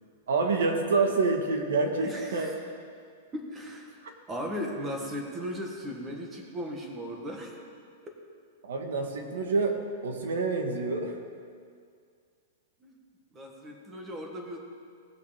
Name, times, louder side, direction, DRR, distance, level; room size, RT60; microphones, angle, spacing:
voice 1, 0.3-2.5 8.6-9.8 10.0-11.2, right 3 dB, 85° right, 3 dB, 1.9 m, -27 dB
voice 2, 2.0-2.6 3.3-4.0 4.3-7.5 8.1-8.2 12.8-13.0 13.3-14.6, equal, 15° right, 1 dB, 1.5 m, -37 dB
18.5 x 6.6 x 5.1 m, 2.2 s
supercardioid pair, 165°, 0 cm